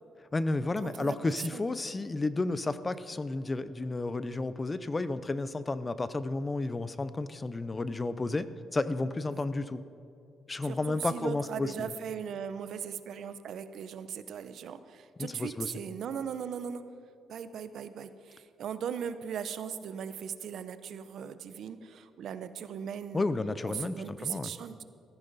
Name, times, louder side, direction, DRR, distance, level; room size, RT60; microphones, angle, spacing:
voice 1, 0.3-8.5 8.7-9.8 10.5-11.7 15.2-15.7 23.1-24.5, left 2 dB, 25° left, 14 dB, 0.6 m, -32 dB
voice 2, 0.8-1.2 1.5-1.6 9.3-9.4 10.6-16.8 17.3-23.3 23.6-24.8, right 8 dB, 70° right, 12 dB, 0.7 m, -38 dB
14.5 x 14.5 x 4.1 m, 2.6 s
cardioid pair, 90°, 0 cm